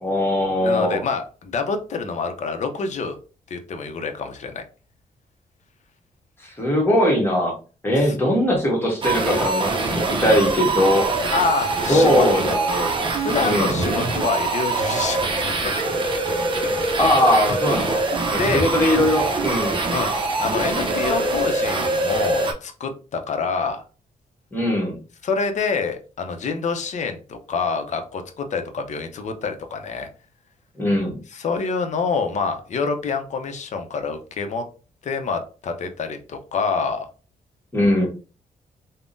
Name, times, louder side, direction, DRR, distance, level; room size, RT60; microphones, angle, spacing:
voice 1, 0.0-1.0 6.4-7.5 7.8-11.0 11.9-13.0 13.4-14.0 17.0-18.0 18.3-19.8 24.5-25.0 30.8-31.2 37.7-38.1, left 1 dB, 15° left, -2 dB, 1.2 m, -20 dB
voice 2, 0.6-3.1 3.5-4.6 8.0-8.1 11.3-12.3 13.2-15.8 16.5-16.7 18.4-18.7 19.9-23.8 25.2-30.1 31.3-34.6 35.0-37.1, left 5 dB, 55° left, 6 dB, 0.6 m, -26 dB
sound 1, 9.0-22.5, right 3 dB, 35° right, 0.6 m, -24 dB
3.5 x 2.1 x 2.5 m, 0.35 s
cardioid pair, 105°, 15 cm